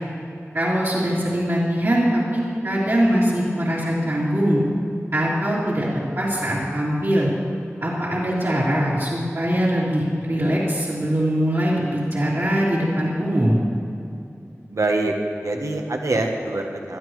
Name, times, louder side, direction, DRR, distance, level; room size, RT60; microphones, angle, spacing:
voice 1, 0.5-4.6 5.1-7.3 7.8-13.6, equal, 65° right, -11 dB, 3.1 m, -22 dB
voice 2, 14.7-17.0, right 2 dB, 85° right, 2 dB, 1.1 m, -24 dB
20.5 x 12.5 x 3.2 m, 2.6 s
wide cardioid pair, 45°, 5 cm